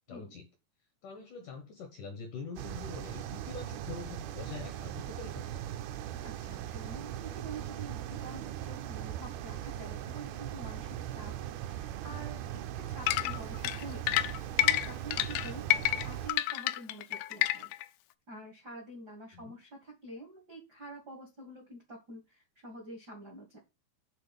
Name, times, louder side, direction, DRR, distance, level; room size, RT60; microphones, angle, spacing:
voice 1, 0.1-0.5 1.0-5.7 15.5-15.8 19.3-19.6, left 5 dB, 70° left, 2.0 m, -45 dB
sound 1, 2.6-16.3, right 11 dB, 80° right, 2.3 m, -39 dB
voice 2, 6.2-14.2 14.6-15.7 16.0-17.7 18.3-23.6, right 2 dB, 65° right, 1.0 m, -47 dB
sound 2, 13.1-17.8, left 15 dB, 85° left, 2.3 m, -29 dB
8.4 x 3.9 x 5.3 m
omnidirectional pair, 5.2 m